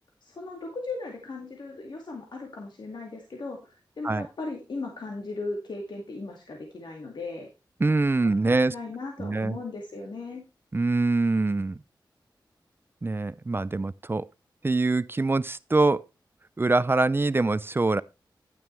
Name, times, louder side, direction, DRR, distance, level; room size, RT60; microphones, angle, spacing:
voice 1, 0.2-7.5 8.7-10.4, left 3 dB, 70° left, 2.2 m, -37 dB
voice 2, 7.8-8.7 9.2-9.6 10.7-11.8 13.0-14.3 14.6-16.0 16.6-18.0, right 3 dB, 25° right, 0.4 m, -24 dB
10.5 x 9.3 x 3.2 m
cardioid pair, 60°, 8 cm